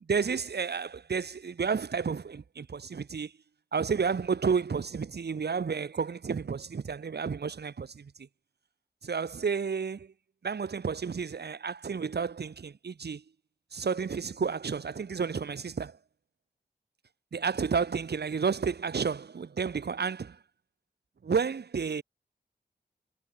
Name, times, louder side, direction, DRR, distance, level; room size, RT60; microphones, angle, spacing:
voice 1, 0.1-3.3 3.7-8.1 9.0-10.1 10.4-13.2 13.7-16.0 17.3-20.4 21.2-22.0, right 5 dB, 80° right, 2.1 m, -31 dB
wide cardioid pair, 75°, 17 cm